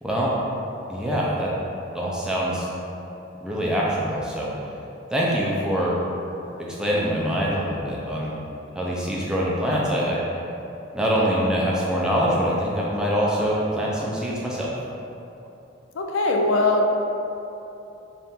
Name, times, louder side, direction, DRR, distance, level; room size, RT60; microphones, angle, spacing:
voice 1, 0.0-0.3 0.9-1.5 1.9-2.7 3.4-4.5 5.1-6.0 6.8-8.4 8.7-10.2 10.9-14.7, equal, 5° right, -6 dB, 0.4 m, -24 dB
voice 2, 16.0-16.9, left 2 dB, 80° left, 2 dB, 0.4 m, -20 dB
3.6 x 2.5 x 4.2 m, 2.9 s
head